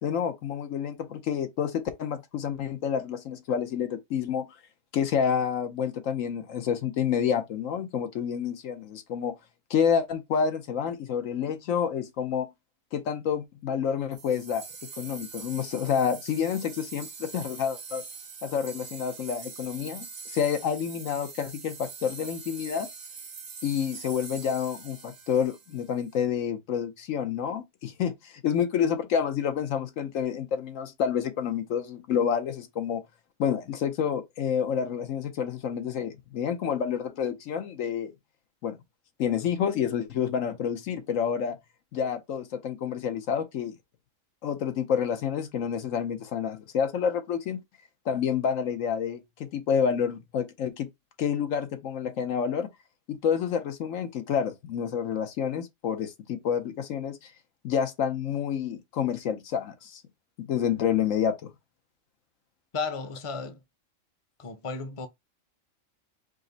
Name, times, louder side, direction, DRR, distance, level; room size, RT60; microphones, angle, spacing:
voice 1, 0.0-4.5 4.9-9.4 9.7-12.5 12.9-14.6 15.0-18.0 18.4-22.9 23.6-33.0 33.4-38.1 38.6-38.8 39.2-41.6 41.9-43.7 44.4-47.6 48.1-50.9 51.2-52.7 53.1-57.3 57.6-60.0 60.4-61.5, left 7 dB, 80° left, 1.1 m, -29 dB
sound 1, 14.1-26.1, right 5 dB, 45° right, 0.7 m, -43 dB
voice 2, 62.7-63.6 64.4-65.1, left 4 dB, 30° left, 0.6 m, -33 dB
5.1 x 2.1 x 3.9 m
omnidirectional pair, 1.3 m